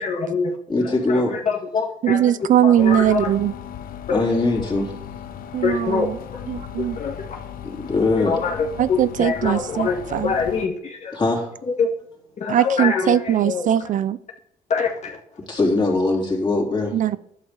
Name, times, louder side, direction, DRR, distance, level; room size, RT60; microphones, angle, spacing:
voice 1, 0.0-0.5 0.8-2.3 2.6-3.3 4.1-4.2 5.6-6.4 6.8-7.1 8.2-11.2 11.8-11.9 12.4-13.7 14.7-15.2, left 5 dB, 50° left, 1.9 m, -25 dB
voice 2, 0.7-1.4 4.1-4.9 7.6-8.4 11.1-11.5 15.5-17.0, left 2 dB, 30° left, 3.6 m, -21 dB
voice 3, 2.0-3.5 5.5-6.2 6.5-7.0 8.8-10.3 12.5-14.2 16.9-17.2, right 10 dB, 60° right, 0.4 m, -20 dB
sound 1, 2.8-10.7, left 9 dB, 75° left, 0.8 m, -36 dB
11.5 x 5.3 x 6.8 m
cardioid pair, 85°, 15 cm